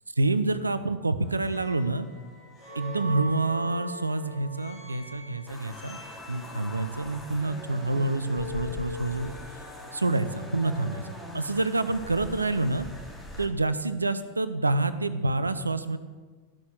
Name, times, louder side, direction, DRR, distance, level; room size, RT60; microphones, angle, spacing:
voice 1, 0.2-2.1 2.7-6.0 6.3-9.3 9.9-11.0 11.3-12.9 13.4-16.0, right 2 dB, 80° right, 13 dB, 0.6 m, -27 dB
sound 1, 1.2-10.5, equal, 25° left, 3.2 m, -41 dB
sound 2, 5.5-13.5, equal, 5° right, 2.9 m, -43 dB
13.0 x 6.2 x 7.5 m, 1.4 s
figure-of-eight pair, 90°, 0 cm